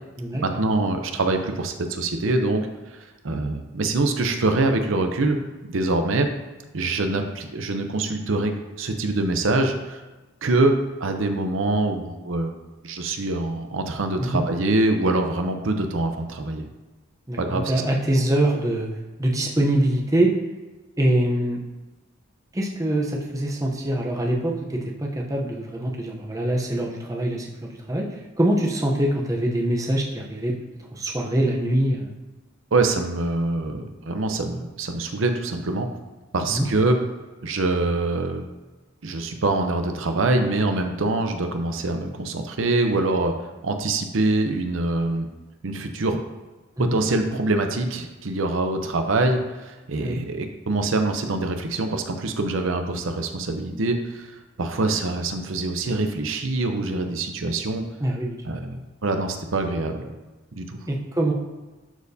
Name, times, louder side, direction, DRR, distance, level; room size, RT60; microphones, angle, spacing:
voice 1, 0.4-2.7 3.2-6.3 6.7-10.0 10.4-12.5 12.8-16.7 17.4-17.7 32.7-35.9 36.3-37.0 37.4-38.4 39.0-43.4 43.6-45.3 45.6-46.2 46.8-54.3 54.6-57.8 58.4-60.1 60.5-60.8, right 2 dB, 70° right, 6 dB, 0.6 m, -24 dB
voice 2, 17.3-18.9 19.2-20.3 21.0-21.6 22.5-30.5 30.9-32.1 36.5-36.7 46.8-47.0 50.0-50.2 58.0-58.4 60.9-61.3, right 1 dB, 15° right, -1 dB, 0.7 m, -24 dB
11.5 x 4.3 x 2.7 m, 1.2 s
head